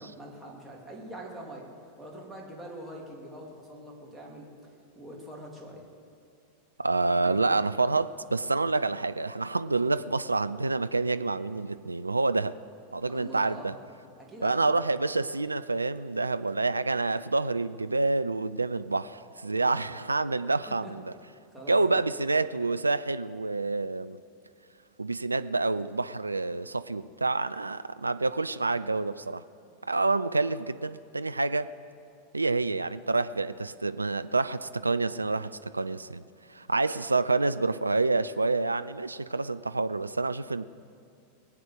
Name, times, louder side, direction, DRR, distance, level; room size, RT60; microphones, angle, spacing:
voice 1, 0.0-1.7 2.0-4.5 4.9-5.8 7.1-7.5 13.1-13.7 14.2-14.7 19.7-19.9 20.7-20.9 21.5-22.1, right 1 dB, 5° right, -3 dB, 3.0 m, -44 dB
voice 2, 6.8-12.5 12.9-13.7 14.4-21.1 21.7-24.2 25.0-29.4 29.8-31.7 32.3-36.2 36.5-40.6, right 3 dB, 80° right, 13 dB, 0.3 m, -28 dB
20.5 x 8.7 x 6.4 m, 2.4 s
figure-of-eight pair, 90°, 0 cm